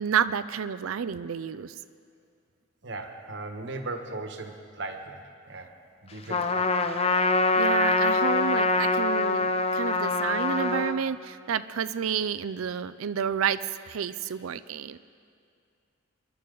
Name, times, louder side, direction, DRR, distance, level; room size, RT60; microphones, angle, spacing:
voice 1, 0.0-1.7 7.5-15.0, right 7 dB, 85° right, 14 dB, 0.4 m, -30 dB
voice 2, 2.8-5.7 6.0-6.7, right 2 dB, 60° right, 5 dB, 1.3 m, -38 dB
Trumpet, 6.3-11.0, left 3 dB, 30° left, 0.5 m, -24 dB
27.0 x 11.0 x 3.9 m, 2.3 s
head